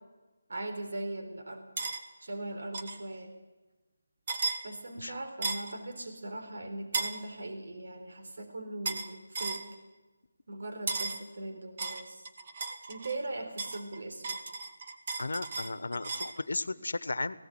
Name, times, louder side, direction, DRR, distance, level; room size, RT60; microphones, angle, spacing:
voice 1, 0.5-1.7 2.2-3.3 4.6-9.6 10.5-12.2 12.9-14.4, right 2 dB, 65° right, 5 dB, 3.8 m, -40 dB
sound 1, 1.8-2.0 2.7-3.0 4.3-4.6 5.4-5.7 6.9-7.2 8.8-9.1 9.3-9.6 10.9-11.2 11.8-13.2 13.6-16.4, right 4 dB, 35° right, 1.7 m, -35 dB
voice 2, 15.2-17.5, left 3 dB, 75° left, 17 dB, 1.1 m, -35 dB
18.0 x 17.0 x 9.0 m, 1.1 s
figure-of-eight pair, 170°, 0 cm